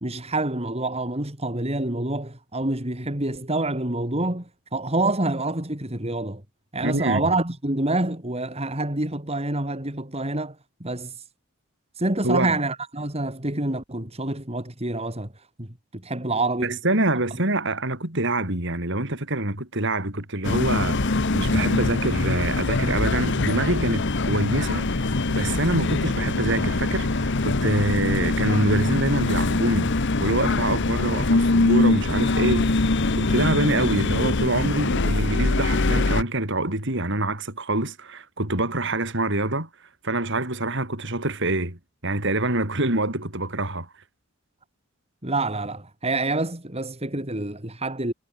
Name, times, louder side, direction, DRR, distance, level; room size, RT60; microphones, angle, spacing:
voice 1, 0.0-6.4 6.7-10.6 10.8-11.1 12.0-15.3 15.6-16.8 45.2-48.1, right 2 dB, 30° right, 3.6 m, -27 dB
voice 2, 6.8-7.3 12.2-12.5 16.6-32.9 33.1-39.7 40.0-43.9, right 2 dB, 60° right, 6.1 m, -25 dB
sound 1, 20.4-36.2, left 2 dB, 60° left, 1.1 m, -23 dB
head